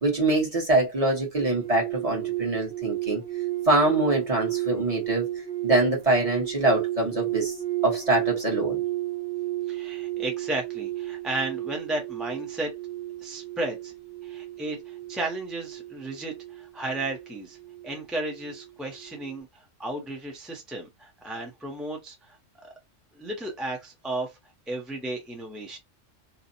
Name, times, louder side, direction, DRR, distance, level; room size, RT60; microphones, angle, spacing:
voice 1, 0.0-3.2 3.7-5.3 5.6-7.5 7.8-8.8, right 2 dB, 30° right, 1.1 m, -24 dB
sound 1, 1.4-18.7 19.0-19.4, right 15 dB, 60° right, 0.6 m, -33 dB
voice 2, 9.7-12.7 13.2-13.9 14.2-17.6 17.8-22.4 22.6-22.7 23.2-24.4 24.7-25.8, right 2 dB, ahead, 0.4 m, -34 dB
2.7 x 2.2 x 2.6 m
omnidirectional pair, 1.3 m